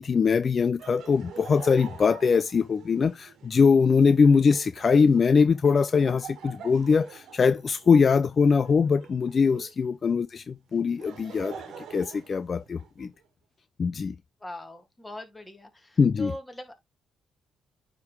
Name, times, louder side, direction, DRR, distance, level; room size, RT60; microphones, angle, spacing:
voice 1, 0.0-13.1 13.8-14.1 16.0-16.3, left 5 dB, 40° left, 0.3 m, -22 dB
Laughter, 0.8-9.9 10.7-13.1, right 6 dB, 75° right, 1.5 m, -46 dB
voice 2, 14.4-16.7, left 1 dB, 10° left, 2.0 m, -41 dB
9.4 x 3.7 x 3.1 m
cardioid pair, 90°, 0 cm